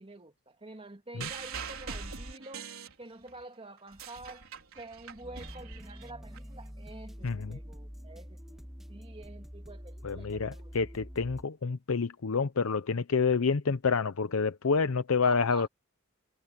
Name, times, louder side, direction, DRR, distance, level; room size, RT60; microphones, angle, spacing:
voice 1, 0.0-4.5 4.7-10.7 15.2-15.7, right 2 dB, 25° right, 2.4 m, -48 dB
sound 1, 1.2-3.4 3.8-6.4 7.3-7.4, right 5 dB, 75° right, 4.2 m, -42 dB
sound 2, 5.2-11.4, equal, ahead, 2.4 m, -46 dB
voice 2, 7.2-7.6 10.0-15.7, left 5 dB, 70° left, 0.7 m, -28 dB
head